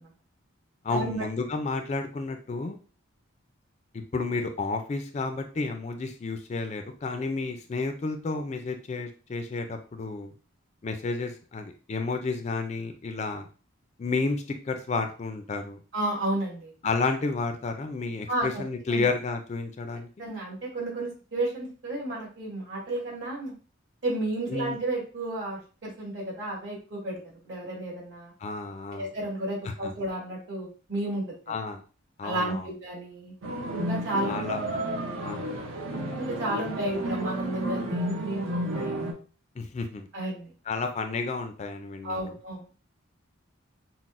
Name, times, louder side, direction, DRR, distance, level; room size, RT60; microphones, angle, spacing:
voice 1, 0.8-2.8 3.9-10.3 10.8-13.5 14.0-15.8 16.8-20.1 24.5-24.8 28.4-29.1 29.6-29.9 31.5-31.8 32.2-32.7 34.2-34.8 35.2-35.5 39.6-40.1 40.7-42.3, left 3 dB, 35° left, 6 dB, 0.3 m, -31 dB
voice 2, 15.9-16.7 18.3-18.6 18.9-19.0 20.2-23.5 24.0-27.2 27.5-28.3 28.9-31.2 32.2-33.3 33.7-34.3 35.6-38.9 40.1-40.5 42.0-42.7, right 1 dB, 60° right, -4 dB, 1.8 m, -32 dB
sound 1, 33.4-39.1, right 1 dB, 80° right, 0.7 m, -32 dB
5.8 x 2.0 x 2.5 m, 0.37 s
head